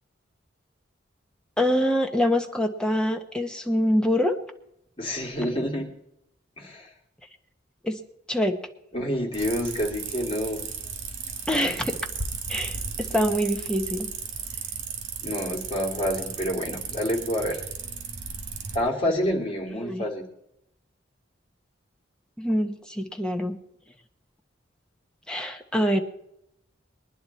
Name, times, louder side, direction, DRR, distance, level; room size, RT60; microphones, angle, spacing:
voice 1, 1.6-4.4 7.8-8.0 8.3-8.6 11.5-12.1 12.5-14.1 19.8-20.0 22.4-23.6 25.3-26.0, equal, 5° left, 4 dB, 1.0 m, -25 dB
voice 2, 5.0-5.9 6.6-6.9 8.9-10.7 15.2-17.6 18.7-20.2, equal, 30° left, -2 dB, 2.9 m, -28 dB
sound 1, 9.3-18.8, right 6 dB, 85° right, 2.1 m, -35 dB
21.5 x 10.5 x 4.2 m, 0.78 s
head